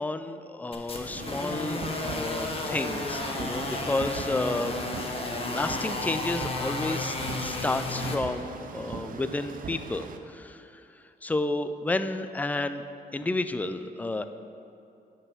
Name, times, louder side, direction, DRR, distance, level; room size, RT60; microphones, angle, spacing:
voice 1, 0.0-4.8 5.3-10.8 11.2-12.8 13.1-14.2, left 2 dB, 10° left, 10 dB, 0.4 m, -31 dB
sound 1, 0.7-8.2, left 2 dB, 35° left, 1.0 m, -33 dB
sound 2, 1.2-10.2, right 5 dB, 55° right, 0.6 m, -40 dB
sound 3, 1.9-8.1, equal, 15° right, 1.6 m, -43 dB
10.0 x 4.5 x 5.8 m, 2.7 s
cardioid pair, 80°, 18 cm